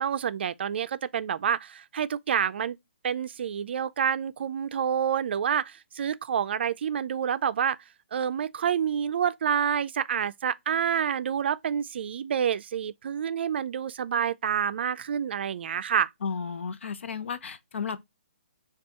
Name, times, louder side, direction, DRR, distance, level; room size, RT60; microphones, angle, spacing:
voice 1, 0.0-2.8 3.0-7.8 8.1-16.1, right 8 dB, 60° right, 0.4 m, -28 dB
voice 2, 16.2-18.0, left 6 dB, 75° left, 0.7 m, -33 dB
6.0 x 2.3 x 3.0 m
hypercardioid pair, 155°, 7 cm